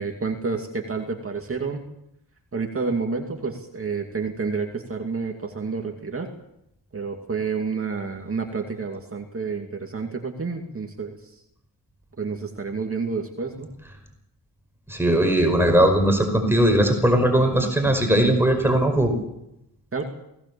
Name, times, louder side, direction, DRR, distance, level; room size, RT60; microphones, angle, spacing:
voice 1, 0.0-1.8 2.5-6.3 6.9-11.2 12.2-13.7 19.9-20.0, right 4 dB, 35° right, 2 dB, 2.5 m, -29 dB
voice 2, 14.9-19.1, right 1 dB, 5° right, 3 dB, 5.2 m, -19 dB
23.5 x 17.0 x 7.0 m, 0.82 s
cardioid pair, 100°, 40 cm